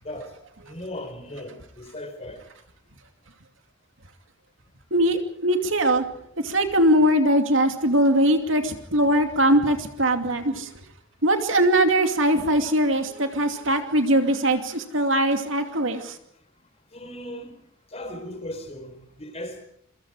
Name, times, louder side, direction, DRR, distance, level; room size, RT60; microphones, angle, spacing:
voice 1, 0.0-0.3 0.6-2.4 16.9-17.6 17.9-19.6, left 1 dB, 30° left, 4.2 m, -37 dB
voice 2, 4.9-6.0 6.4-10.7 11.2-16.2, right 1 dB, 70° right, 2.6 m, -21 dB
28.0 x 24.0 x 5.0 m
head